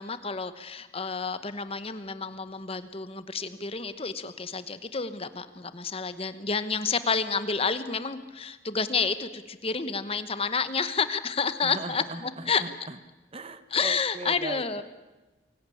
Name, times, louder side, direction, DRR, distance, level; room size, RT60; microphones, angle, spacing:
voice 1, 0.0-12.0 12.5-12.6 13.7-14.8, left 5 dB, 30° left, 12 dB, 1.1 m, -30 dB
voice 2, 11.6-13.0 13.3-14.8, right 2 dB, 30° right, 12 dB, 1.1 m, -39 dB
24.5 x 17.5 x 8.6 m, 1.1 s
head